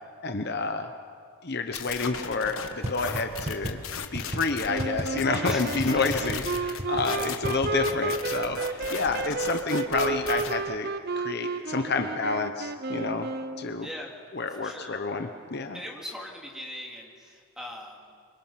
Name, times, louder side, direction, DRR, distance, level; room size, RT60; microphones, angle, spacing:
voice 1, 0.2-0.9 1.4-3.8 4.1-10.9 11.2-13.3 13.6-13.9 14.3-15.8, left 3 dB, 45° left, 6 dB, 1.0 m, -29 dB
sound 1, 1.7-10.5, left 6 dB, 70° left, 1.3 m, -37 dB
sound 2, 2.8-2.9 3.1-3.2 3.5-3.7 4.1-4.4 4.8-5.0 5.5-5.6 5.8-5.9 6.1-6.4 6.8-7.0 7.4-7.7, right 1 dB, 30° right, 1.7 m, -30 dB
sound 3, 4.7-13.9, right 3 dB, 45° right, 0.6 m, -32 dB
voice 2, 5.4-6.1 13.8-14.1 14.5-15.0 15.7-18.1, left 1 dB, 5° right, -1 dB, 3.0 m, -40 dB
26.5 x 24.0 x 5.9 m, 2.3 s
head